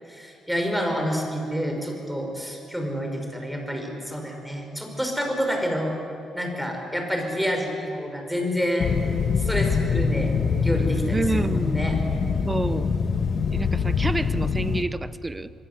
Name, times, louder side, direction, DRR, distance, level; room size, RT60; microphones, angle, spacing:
voice 1, 0.1-6.0 6.3-8.9 9.4-10.3 10.6-11.9, equal, ahead, 3 dB, 5.7 m, -28 dB
sound 1, 8.8-14.8, left 5 dB, 50° left, 1.6 m, -24 dB
voice 2, 11.1-11.9 12.4-12.9 13.5-15.5, right 2 dB, 20° right, 14 dB, 0.9 m, -28 dB
25.5 x 23.0 x 8.3 m, 2.8 s
cardioid pair, 90°, 0 cm